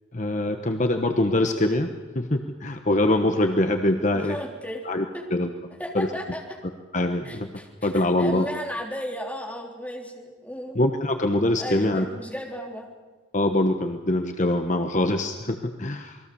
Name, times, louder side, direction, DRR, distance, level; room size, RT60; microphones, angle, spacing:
voice 1, 0.1-4.4 4.8-6.1 6.9-8.5 10.7-12.0 13.3-16.2, left 1 dB, 40° left, 6 dB, 1.2 m, -24 dB
voice 2, 4.1-4.8 5.1-5.2 5.8-6.6 7.2-10.8 11.6-12.9, equal, 10° left, 0 dB, 3.7 m, -35 dB
27.5 x 21.0 x 7.0 m, 1.3 s
head